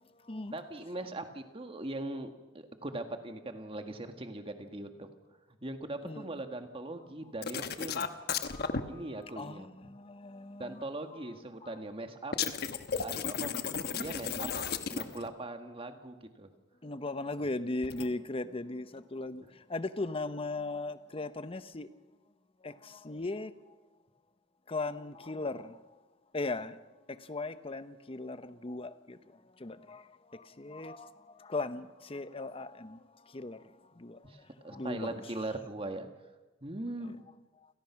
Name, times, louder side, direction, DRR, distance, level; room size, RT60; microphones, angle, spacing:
voice 1, 0.5-5.1 5.6-8.1 8.8-9.9 10.6-12.3 13.0-14.5 14.9-16.5 34.2-34.4 34.6-36.1 36.6-37.2, right 2 dB, 30° right, 1.7 m, -40 dB
sound 1, 7.4-8.8 12.3-15.3 17.8-18.1, left 6 dB, 55° left, 1.2 m, -34 dB
voice 2, 8.4-9.0 9.4-10.8 11.6-11.7 16.8-21.9 22.6-23.5 24.7-25.8 26.3-26.8 27.1-29.2 29.6-33.0 33.3-34.2 34.7-35.1 37.0-37.1, left 2 dB, 30° left, 0.8 m, -38 dB
29.0 x 17.0 x 5.9 m
head